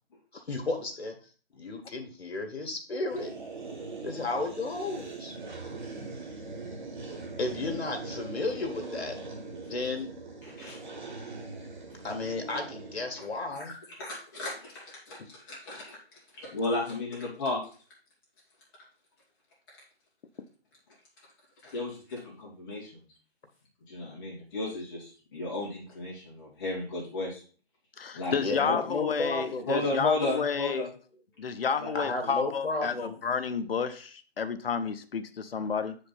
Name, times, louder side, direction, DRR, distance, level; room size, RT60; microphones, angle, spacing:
voice 1, 0.3-1.1 1.5-3.3 4.0-5.4 7.4-9.2 9.7-10.1 12.0-13.7 28.4-29.7 31.9-33.2, left 3 dB, 80° left, 4 dB, 2.0 m, -33 dB
sound 1, 3.1-13.5, right 3 dB, 45° right, 1.5 m, -41 dB
voice 2, 10.4-10.8 14.0-16.0 16.3-17.6 21.6-23.0 23.9-27.4 28.1-28.8 29.7-30.9 31.8-31.9, left 2 dB, 20° left, -5 dB, 2.4 m, -33 dB
voice 3, 28.0-30.9 31.4-32.9 33.2-36.0, left 6 dB, 65° left, 10 dB, 0.8 m, -31 dB
6.6 x 5.1 x 4.2 m, 0.39 s
hypercardioid pair, 170°, 32 cm